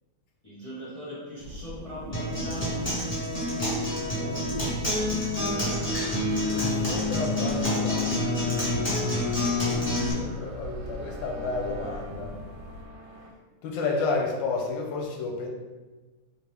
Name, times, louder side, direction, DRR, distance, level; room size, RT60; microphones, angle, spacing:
voice 1, 0.4-3.0, equal, 35° left, -10 dB, 0.5 m, -40 dB
sound 1, 1.4-12.8, equal, 30° right, 0.8 m, -39 dB
Acoustic guitar, 2.1-10.1, left 1 dB, 20° left, 0.8 m, -27 dB
voice 2, 4.1-4.6 6.4-8.5 9.7-12.3 13.6-15.5, left 3 dB, 75° left, 0 dB, 1.1 m, -32 dB
sound 2, 5.4-13.3, right 3 dB, 80° right, 1.3 m, -45 dB
3.8 x 2.6 x 3.3 m, 1.2 s
omnidirectional pair, 2.4 m